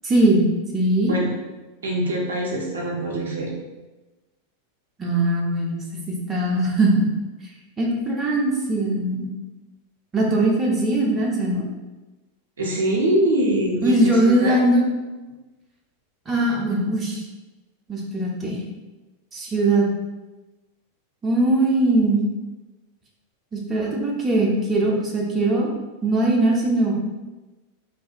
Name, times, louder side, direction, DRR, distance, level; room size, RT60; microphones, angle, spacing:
voice 1, 0.0-0.5 0.7-1.1 5.0-7.1 7.8-9.3 10.1-11.6 13.8-14.8 16.3-17.2 17.9-18.6 19.3-19.9 21.2-22.2 23.5-25.7 26.0-26.9, right 1 dB, 20° right, -3 dB, 0.5 m, -20 dB
voice 2, 1.8-3.5 12.6-14.6, right 1 dB, 70° right, -2 dB, 0.5 m, -23 dB
2.4 x 2.1 x 2.6 m, 1.1 s
figure-of-eight pair, 90°, 0 cm